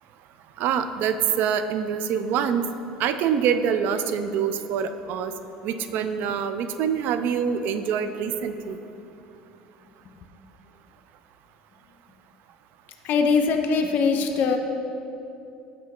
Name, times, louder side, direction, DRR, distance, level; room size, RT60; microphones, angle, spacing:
voice 1, 0.6-2.7 3.0-5.3 5.6-8.8, right 7 dB, 55° right, 10 dB, 0.3 m, -25 dB
voice 2, 13.0-14.6, left 5 dB, 50° left, 4 dB, 0.4 m, -21 dB
6.1 x 5.5 x 3.0 m, 2.7 s
hypercardioid pair, 65°, 4 cm